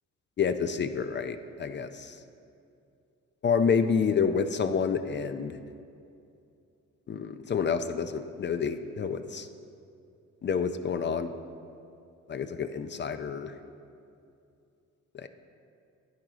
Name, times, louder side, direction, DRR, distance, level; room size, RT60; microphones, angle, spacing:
voice 1, 0.4-2.1 3.4-5.6 7.1-9.5 10.4-11.3 12.3-13.5 15.1-15.3, left 6 dB, 35° left, 9 dB, 0.5 m, -28 dB
11.0 x 8.9 x 3.9 m, 2.6 s
cardioid pair, 90°, 30 cm